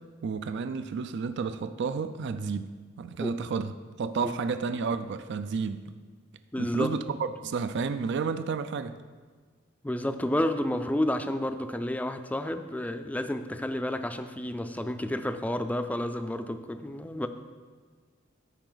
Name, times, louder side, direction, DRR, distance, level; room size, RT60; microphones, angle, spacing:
voice 1, 0.2-5.9 6.6-8.9, right 5 dB, 60° right, 11 dB, 0.4 m, -31 dB
voice 2, 6.5-6.9 9.8-17.3, left 1 dB, 5° left, 9 dB, 0.4 m, -30 dB
13.5 x 4.9 x 3.9 m, 1.5 s
head